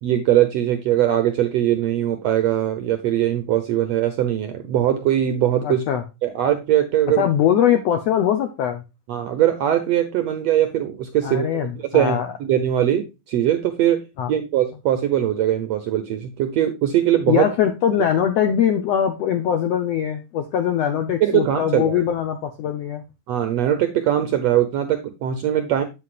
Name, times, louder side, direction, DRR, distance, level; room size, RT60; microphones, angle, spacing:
voice 1, 0.0-5.8 6.2-7.3 9.1-17.5 21.2-22.0 23.3-25.8, right 11 dB, 80° right, 9 dB, 1.4 m, -21 dB
voice 2, 5.6-6.0 7.2-8.8 11.2-12.3 14.2-14.3 17.3-23.0, left 9 dB, 90° left, 7 dB, 1.4 m, -21 dB
8.3 x 8.1 x 2.4 m, 0.26 s
omnidirectional pair, 4.1 m